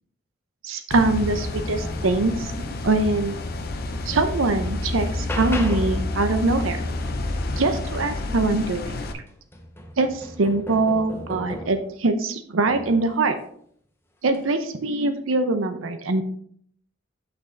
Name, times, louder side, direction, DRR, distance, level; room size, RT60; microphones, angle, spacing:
voice 1, 0.6-2.5 2.8-3.4 4.1-6.8 7.6-8.8 9.1-9.2 10.0-13.4 14.2-16.2, right 3 dB, 80° right, 8 dB, 0.6 m, -23 dB
sound 1, 0.9-9.1, left 2 dB, 50° left, 0.7 m, -29 dB
sound 2, 4.8-6.1 8.5-8.6 9.0-12.0 12.7-13.2 14.2-14.5, equal, 10° left, 0.8 m, -36 dB
6.4 x 6.0 x 3.3 m, 0.62 s
head